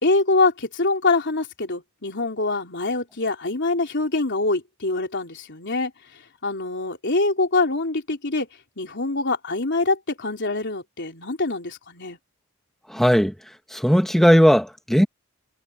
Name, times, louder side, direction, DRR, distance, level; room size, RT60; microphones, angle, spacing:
voice 1, 0.0-5.9 6.4-8.5 8.8-12.2, left 3 dB, 55° left, 3.8 m, -24 dB
voice 2, 12.9-15.1, equal, ahead, 1.2 m, -18 dB
head